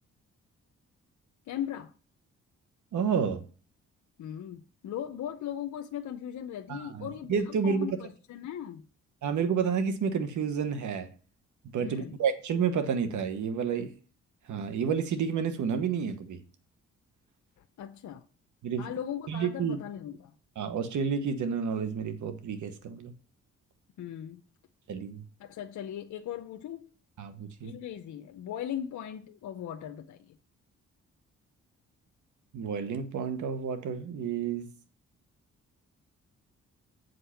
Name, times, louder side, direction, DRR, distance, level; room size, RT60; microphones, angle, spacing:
voice 1, 1.5-1.9 4.2-8.8 11.8-12.2 17.8-18.3 18.8-20.3 24.0-24.4 25.4-26.9 27.6-30.4, left 10 dB, 75° left, 0.7 m, -38 dB
voice 2, 2.9-3.4 6.7-8.0 9.2-11.1 11.7-13.9 14.5-16.4 18.6-18.9 19.3-19.8 20.6-23.1 24.9-25.2 27.2-27.7 32.5-34.7, right 6 dB, 75° right, 1.2 m, -30 dB
7.8 x 5.3 x 5.7 m
cardioid pair, 70°, 30 cm